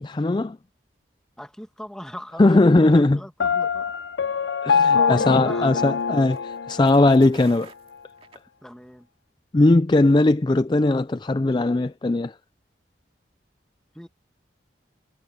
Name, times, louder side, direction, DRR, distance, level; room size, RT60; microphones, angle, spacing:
voice 1, 0.0-0.6 2.4-3.2 4.6-7.7 9.5-12.3, left 2 dB, 25° left, 0.4 m, -19 dB
voice 2, 1.4-3.9 4.9-6.0 8.6-9.1 13.9-14.1, equal, 5° left, 2.0 m, -38 dB
Piano, 3.4-7.3, left 6 dB, 80° left, 0.5 m, -23 dB
sound 1, 4.6-9.0, right 4 dB, 35° right, 2.4 m, -50 dB
head